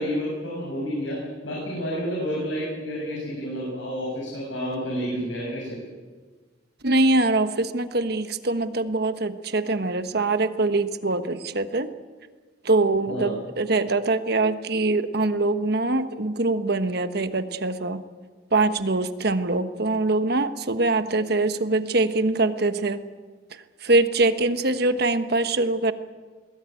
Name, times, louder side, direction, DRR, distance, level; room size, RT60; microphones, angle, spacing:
voice 1, 0.0-5.9 13.1-13.3, equal, 80° left, -4 dB, 7.2 m, -30 dB
voice 2, 6.8-11.9 12.6-18.0 18.5-23.0 23.8-25.9, right 2 dB, 55° right, 10 dB, 1.2 m, -23 dB
22.0 x 19.5 x 9.2 m, 1.4 s
head